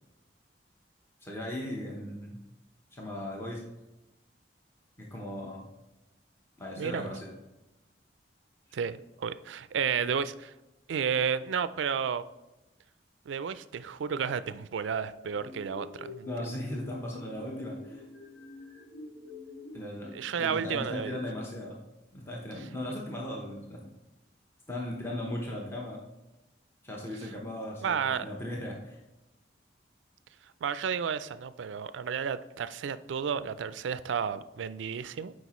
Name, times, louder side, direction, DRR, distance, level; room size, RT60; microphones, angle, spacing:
voice 1, 1.2-2.4 2.9-3.6 5.0-5.7 6.6-7.3 8.7-8.8 16.2-18.0 19.7-21.8 22.1-23.9 24.7-26.0 26.8-29.0, left 1 dB, 15° left, -2 dB, 0.9 m, -37 dB
voice 2, 6.8-7.1 8.7-10.5 10.9-12.2 13.3-16.3 20.1-21.2 27.8-28.2 30.6-35.3, right 7 dB, 85° right, 14 dB, 0.4 m, -32 dB
sound 1, 15.3-20.5, left 2 dB, 85° left, 1.7 m, -47 dB
8.0 x 5.0 x 3.0 m, 1.0 s
head